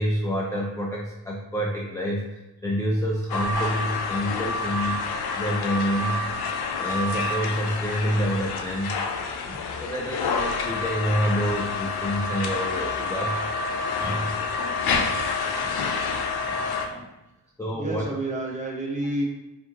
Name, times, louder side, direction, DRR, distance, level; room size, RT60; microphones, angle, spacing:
voice 1, 0.0-6.2 6.8-9.0 9.5-14.4 15.2-15.9 16.4-17.1 17.6-18.0, equal, 10° left, -2 dB, 0.3 m, -28 dB
sound 1, 3.3-16.9, left 4 dB, 60° left, 0.5 m, -28 dB
voice 2, 17.7-19.2, right 1 dB, 15° right, -2 dB, 0.8 m, -29 dB
4.9 x 2.7 x 2.8 m, 0.96 s
cardioid pair, 125°, 43 cm